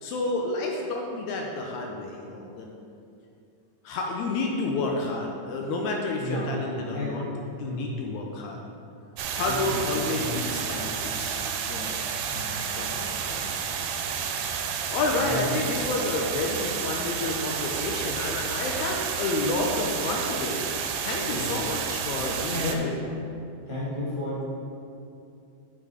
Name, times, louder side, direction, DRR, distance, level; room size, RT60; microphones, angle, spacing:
voice 1, 0.0-2.7 3.8-7.2 7.6-8.6 9.3-12.0 12.8-13.5 14.9-20.6 21.0-22.9, left 2 dB, 80° left, 0 dB, 1.7 m, -30 dB
voice 2, 6.2-7.4 7.6-8.2 9.4-10.5 12.3-12.7 15.2-15.4 21.3-21.5 22.5-22.9 23.3-23.4 23.7-24.4, left 1 dB, 45° right, -9 dB, 0.3 m, -33 dB
sound 1, 9.2-22.8, right 7 dB, 85° right, 2.3 m, -31 dB
6.5 x 6.2 x 4.8 m, 2.6 s
omnidirectional pair, 3.9 m